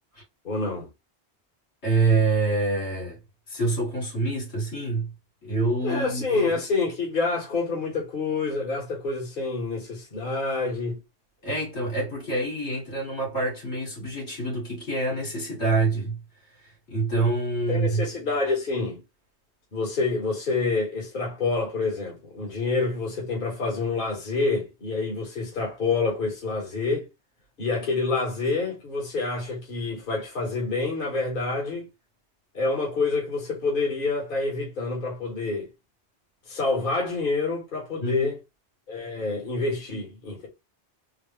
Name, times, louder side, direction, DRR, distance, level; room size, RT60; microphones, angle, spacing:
voice 1, 0.4-0.9 5.8-11.0 17.7-19.0 19.7-27.1 27.6-31.9 32.5-35.7 36.5-38.4 38.9-40.5, left 3 dB, 50° left, 1.4 m, -27 dB
voice 2, 1.8-3.2 3.5-5.1 5.4-6.5 11.4-16.2 16.5-18.1 38.0-38.3, right 3 dB, 80° left, 2.4 m, -26 dB
4.1 x 2.0 x 3.3 m
omnidirectional pair, 1.1 m